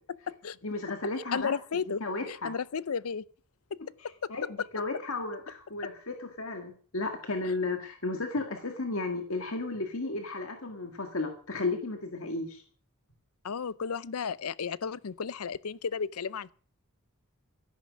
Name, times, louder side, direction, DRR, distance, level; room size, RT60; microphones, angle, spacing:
voice 1, 0.6-1.5 1.9-2.5 4.0-12.6, left 3 dB, 65° left, 1.9 m, -34 dB
voice 2, 1.3-2.0 2.3-3.2 4.2-4.3 4.6-4.7 13.4-16.5, left 6 dB, 85° left, 0.6 m, -33 dB
14.0 x 11.0 x 6.3 m
head